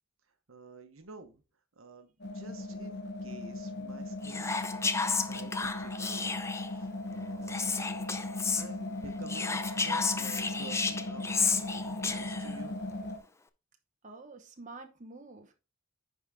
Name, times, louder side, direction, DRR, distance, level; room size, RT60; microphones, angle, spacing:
voice 1, 0.5-1.4 1.8-8.0 8.3-11.3 12.1-12.8, right 3 dB, 85° right, 1.0 m, -50 dB
sound 1, 2.2-13.2, left 2 dB, 55° left, 0.9 m, -38 dB
Whispering, 4.2-6.8 7.5-8.7 9.3-12.6, left 4 dB, 15° left, 0.4 m, -32 dB
voice 2, 14.0-15.5, right 3 dB, 35° right, 1.0 m, -48 dB
10.0 x 3.9 x 3.4 m
head